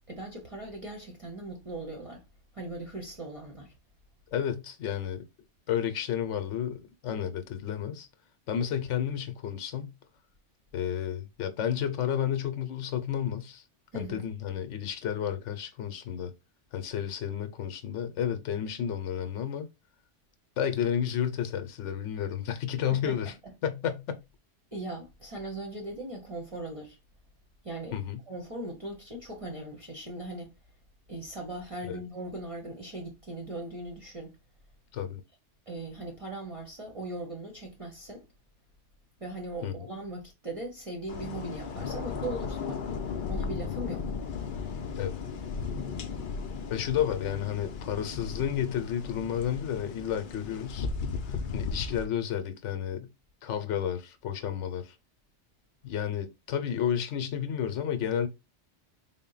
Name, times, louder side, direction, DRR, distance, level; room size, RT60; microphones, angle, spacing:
voice 1, 0.1-2.2 2.5-3.7 13.9-14.2 22.9-23.5 24.7-27.0 27.6-28.0 28.3-30.5 31.1-34.4 35.7-38.3 39.2-42.8 43.3-44.1, right 2 dB, 35° right, 0.7 m, -39 dB
voice 2, 4.3-5.2 5.7-8.1 8.5-9.9 10.7-13.6 13.9-16.3 16.7-19.7 20.6-23.3 23.6-24.2 27.9-28.2 31.9-32.0 34.9-35.2 39.6-39.9 45.0-45.2 46.7-50.9 51.5-53.1 53.4-54.9 55.8-58.3, left 9 dB, 80° left, 1.0 m, -31 dB
sound 1, 41.1-52.1, left 5 dB, 55° left, 0.6 m, -36 dB
3.8 x 2.1 x 3.8 m
omnidirectional pair, 1.2 m